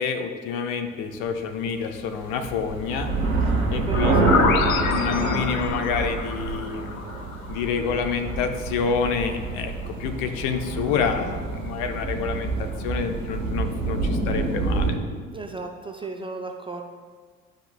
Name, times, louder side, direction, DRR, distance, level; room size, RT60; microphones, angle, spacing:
voice 1, 0.0-3.1 3.7-7.0 7.5-15.0, left 6 dB, 55° left, 6 dB, 0.8 m, -28 dB
sound 1, 2.1-14.9, right 3 dB, 85° right, 1.2 m, -27 dB
sound 2, 3.9-7.7, left 6 dB, 80° left, 0.5 m, -27 dB
voice 2, 3.9-4.3 15.3-16.8, right 3 dB, 15° right, 2 dB, 0.4 m, -35 dB
11.5 x 5.1 x 2.2 m, 1.5 s
figure-of-eight pair, 55°, 40 cm